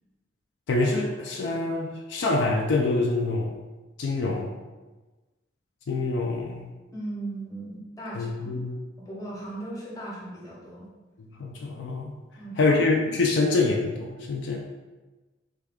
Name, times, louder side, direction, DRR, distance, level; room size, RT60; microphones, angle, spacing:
voice 1, 0.7-3.5 4.0-4.6 5.9-6.7 8.1-8.8 11.2-12.1 12.6-14.8, left 3 dB, 65° left, 1 dB, 0.3 m, -26 dB
voice 2, 6.9-8.6 9.0-10.9 12.4-12.8, right 2 dB, 20° left, -5 dB, 0.8 m, -37 dB
3.5 x 2.3 x 3.5 m, 1.2 s
head